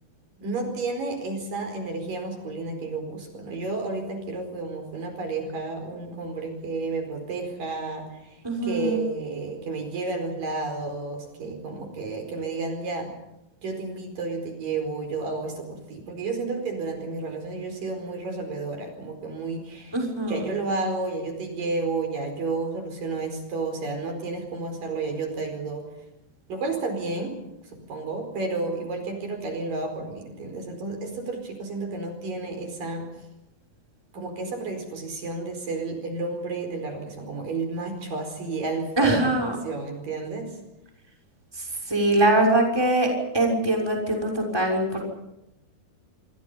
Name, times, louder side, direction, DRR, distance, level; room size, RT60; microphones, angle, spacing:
voice 1, 0.4-13.1 13.6-20.0 20.3-25.8 26.5-27.4 27.6-33.1 34.1-40.6, right 3 dB, 60° right, 5 dB, 6.2 m, -31 dB
voice 2, 8.4-9.0 19.9-20.4 39.0-39.6 41.9-43.1 43.3-45.0, right 1 dB, 5° right, 0 dB, 6.0 m, -22 dB
27.0 x 26.5 x 5.6 m, 0.89 s
omnidirectional pair, 4.4 m